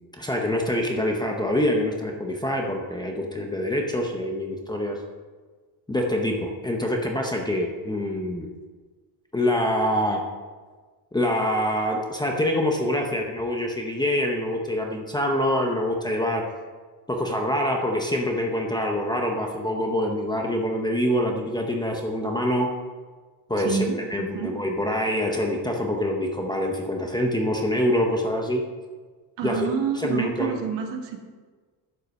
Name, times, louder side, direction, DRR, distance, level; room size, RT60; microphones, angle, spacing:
voice 1, 0.2-5.0 5.9-8.5 9.3-10.2 11.1-16.5 17.1-22.7 23.5-28.6 29.4-29.7 29.9-30.6, left 1 dB, 10° left, 1 dB, 0.7 m, -25 dB
voice 2, 23.6-24.5 29.4-31.2, right 7 dB, 65° right, 3 dB, 1.5 m, -28 dB
11.0 x 5.5 x 6.4 m, 1.4 s
cardioid pair, 170°, 47 cm